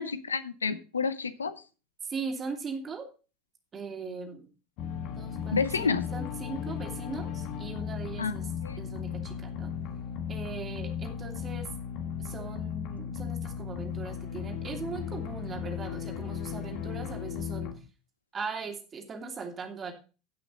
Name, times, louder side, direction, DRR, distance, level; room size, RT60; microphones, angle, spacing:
voice 1, 0.0-1.5 5.5-6.1 8.2-8.3 8.6-8.8, left 5 dB, 85° left, 13 dB, 0.7 m, -29 dB
voice 2, 2.0-3.1 3.7-4.5 5.2-9.7 10.3-11.7 12.2-17.7 18.3-19.9, right 4 dB, 30° right, 3 dB, 2.8 m, -39 dB
sound 1, 4.8-17.7, left 7 dB, 55° left, 1.4 m, -36 dB
15.5 x 6.0 x 3.9 m, 0.34 s
figure-of-eight pair, 70°, 0 cm